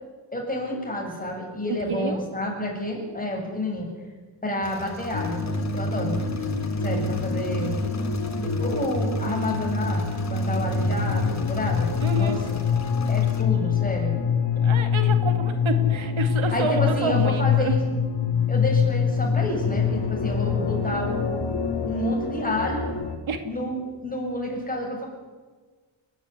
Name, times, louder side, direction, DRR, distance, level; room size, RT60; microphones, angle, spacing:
voice 1, 0.3-3.9 4.4-5.5 5.7-6.2 6.8-7.7 8.4-12.6 13.1-14.2 16.5-17.9 18.5-21.4 21.8-22.9 23.5-25.1, left 1 dB, 15° left, 0 dB, 7.2 m, -29 dB
voice 2, 1.7-2.2 12.0-12.5 14.6-17.7 23.3-23.4, right 4 dB, 75° right, 7 dB, 2.5 m, -29 dB
Engine / Mechanisms, 4.6-13.4, left 2 dB, 35° left, 3.8 m, -42 dB
sound 1, 5.1-23.2, left 6 dB, 55° left, 2.4 m, -25 dB
29.5 x 11.5 x 9.9 m, 1.4 s
wide cardioid pair, 125°, 48 cm